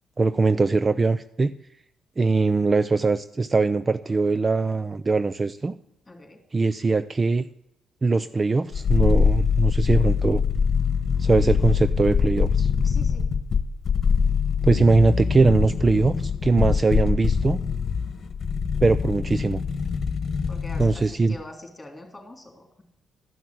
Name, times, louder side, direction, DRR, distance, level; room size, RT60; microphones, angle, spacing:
voice 1, 0.2-1.5 2.2-5.7 6.5-7.5 8.0-10.4 11.2-12.7 14.6-17.6 18.8-19.6 20.8-21.3, right 3 dB, 25° right, 14 dB, 0.4 m, -21 dB
voice 2, 6.1-6.4 12.8-13.3 20.5-22.8, left 1 dB, 15° left, 4 dB, 3.2 m, -43 dB
sound 1, 8.7-21.1 21.4-21.5, left 6 dB, 50° left, 1.2 m, -23 dB
12.5 x 5.9 x 7.7 m, 0.82 s
cardioid pair, 90°, 0 cm